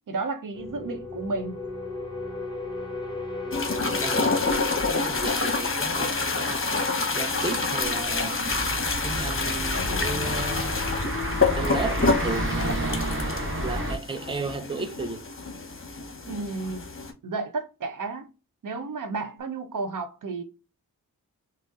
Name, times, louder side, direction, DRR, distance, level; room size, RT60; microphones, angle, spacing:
voice 1, 0.1-1.6 16.3-16.9 17.2-18.3 18.6-20.4, right 3 dB, 60° right, 0.7 m, -32 dB
sound 1, 0.5-15.2 15.4-15.7, left 3 dB, 15° left, 1.3 m, -38 dB
voice 2, 3.4-6.7 7.2-8.5 9.0-10.8 11.5-15.3, right 4 dB, 15° right, 0.6 m, -34 dB
sound 2, 3.5-17.1, left 3 dB, 35° left, 0.9 m, -28 dB
sound 3, 8.4-14.0, equal, 35° right, 1.0 m, -30 dB
5.2 x 2.1 x 2.4 m
cardioid pair, 45°, 36 cm